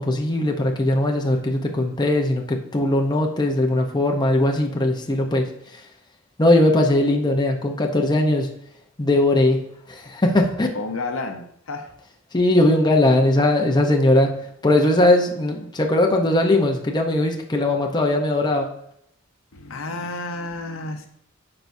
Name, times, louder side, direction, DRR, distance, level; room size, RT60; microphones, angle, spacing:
voice 1, 0.0-5.8 6.4-8.5 9.0-9.6 9.9-10.7 12.3-14.4 14.6-18.7, left 1 dB, 20° left, 1 dB, 0.8 m, -19 dB
voice 2, 10.7-11.9 19.5-21.1, left 3 dB, 70° left, 5 dB, 0.7 m, -31 dB
12.5 x 4.7 x 2.7 m, 0.73 s
head